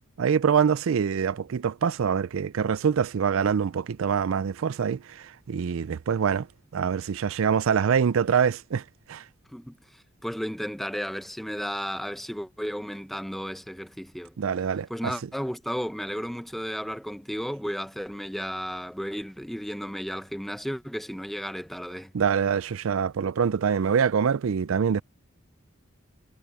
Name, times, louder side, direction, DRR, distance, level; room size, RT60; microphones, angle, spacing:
voice 1, 0.2-6.5 6.7-8.8 9.1-9.2 14.4-15.1 22.1-25.0, right 7 dB, 85° right, 0.4 m, -25 dB
voice 2, 9.5-14.4 14.9-22.1, equal, ahead, 1.0 m, -34 dB
head